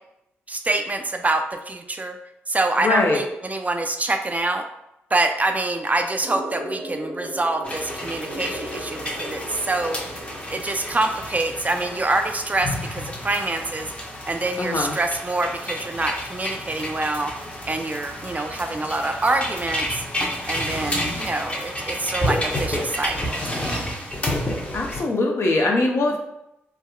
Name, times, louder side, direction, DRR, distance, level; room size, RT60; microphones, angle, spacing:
voice 1, 0.5-2.2 2.5-4.6 5.1-10.0 10.5-13.9 14.3-17.3 17.7-20.0 20.5-23.9 26.1-26.2, right 2 dB, 30° right, 5 dB, 0.4 m, -26 dB
voice 2, 2.8-3.2 14.6-14.9 24.7-26.2, left 2 dB, 50° left, 1 dB, 0.6 m, -21 dB
sound 1, 6.2-11.2, right 1 dB, 60° right, 0.7 m, -36 dB
sound 2, 7.6-25.0, equal, 25° left, 0.8 m, -30 dB
3.5 x 2.2 x 2.2 m, 0.85 s
hypercardioid pair, 40°, 5 cm